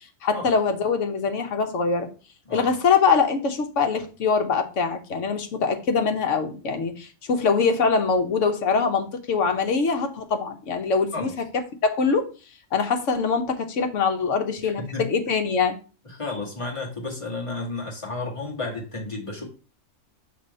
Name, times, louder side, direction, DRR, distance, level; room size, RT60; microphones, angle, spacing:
voice 1, 0.2-2.1 2.5-11.3 11.8-12.3 12.7-15.8, left 5 dB, 70° left, 6 dB, 1.2 m, -23 dB
voice 2, 14.6-15.0 16.1-19.4, left 3 dB, 25° left, -2 dB, 1.9 m, -32 dB
5.7 x 3.4 x 5.3 m, 0.34 s
omnidirectional pair, 1.3 m